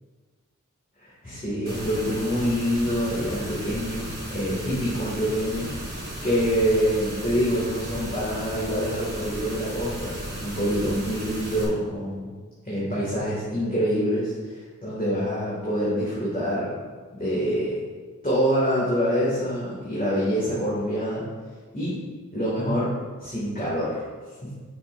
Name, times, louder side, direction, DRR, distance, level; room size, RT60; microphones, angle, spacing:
voice 1, 1.0-5.7 6.2-12.3 12.6-16.8 17.1-17.7 18.2-21.2 21.7-21.9 22.3-22.9 23.2-24.0 24.4-24.5, equal, 25° left, -9 dB, 2.2 m, -26 dB
sound 1, 1.7-11.7, right 1 dB, 30° right, 2.2 m, -35 dB
9.8 x 5.8 x 2.6 m, 1.5 s
wide cardioid pair, 45°, 32 cm